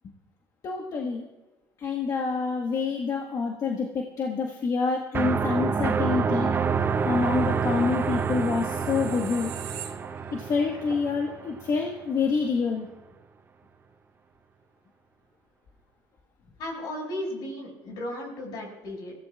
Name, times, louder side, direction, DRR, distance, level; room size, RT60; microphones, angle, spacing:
voice 1, 0.6-1.3 1.8-6.5 7.0-9.5 10.3-12.9, left 4 dB, 45° left, 1 dB, 1.5 m, -27 dB
sound 1, 5.1-11.9, right 6 dB, 30° right, 0.7 m, -28 dB
sound 2, 7.6-10.5 10.9-11.1, right 10 dB, 75° right, 1.5 m, -43 dB
voice 2, 16.6-19.1, left 1 dB, 70° left, 0 dB, 6.0 m, -35 dB
21.5 x 15.5 x 2.4 m, 1.1 s
cardioid pair, 100°, 8 cm